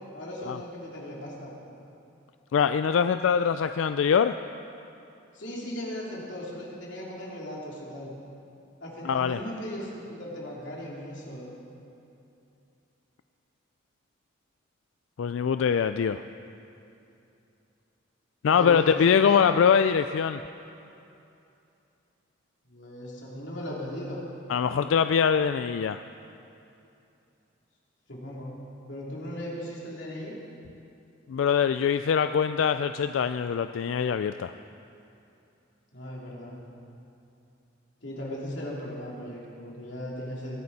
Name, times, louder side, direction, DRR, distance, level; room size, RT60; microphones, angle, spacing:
voice 1, 0.1-1.5 5.3-8.1 8.8-11.6 18.5-19.5 22.7-24.2 28.1-28.6 28.9-30.3 35.9-36.6 38.0-40.6, equal, 65° left, -4 dB, 3.2 m, -37 dB
voice 2, 2.5-4.4 9.0-9.4 15.2-16.2 18.4-20.4 24.5-26.0 31.3-34.5, left 7 dB, 80° left, 10 dB, 0.3 m, -23 dB
22.0 x 11.0 x 4.2 m, 2.7 s
head